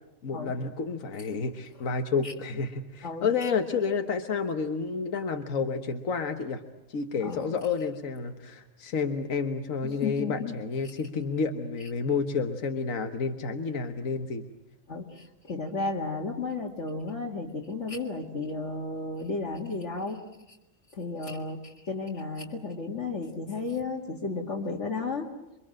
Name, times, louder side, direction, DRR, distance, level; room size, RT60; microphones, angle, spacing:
voice 1, 0.2-6.6 6.9-14.5, left 5 dB, 80° left, 6 dB, 1.6 m, -30 dB
voice 2, 3.0-3.5 7.2-7.6 9.8-10.6 14.9-20.2 20.5-20.6 20.9-25.3, left 3 dB, 60° left, -2 dB, 2.2 m, -33 dB
28.0 x 24.0 x 7.7 m, 0.94 s
omnidirectional pair, 1.4 m